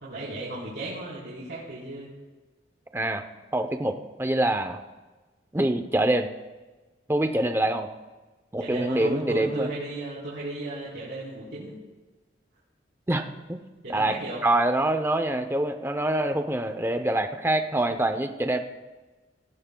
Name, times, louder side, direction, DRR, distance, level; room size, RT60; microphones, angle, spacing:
voice 1, 0.0-2.1 8.6-11.7 13.8-14.4, right 2 dB, 80° right, -8 dB, 3.8 m, -34 dB
voice 2, 2.9-3.2 3.5-4.8 5.5-6.3 7.1-7.9 8.5-9.7 13.1-18.6, right 1 dB, 15° right, 7 dB, 0.6 m, -25 dB
18.5 x 16.0 x 2.3 m, 1.2 s
head